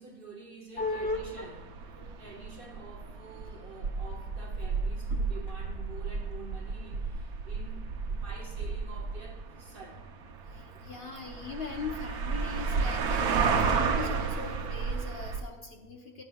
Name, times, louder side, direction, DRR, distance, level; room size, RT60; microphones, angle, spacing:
voice 1, 0.0-1.6 2.2-10.0 10.7-10.8, right 4 dB, 45° right, 0.9 m, -48 dB
voice 2, 0.8-1.5 1.9-2.1 5.1-5.2 10.5-16.2, left 3 dB, 50° left, 0.9 m, -38 dB
sound 1, 0.8-15.4, right 5 dB, 85° right, 1.3 m, -32 dB
15.0 x 9.9 x 2.3 m
omnidirectional pair, 1.5 m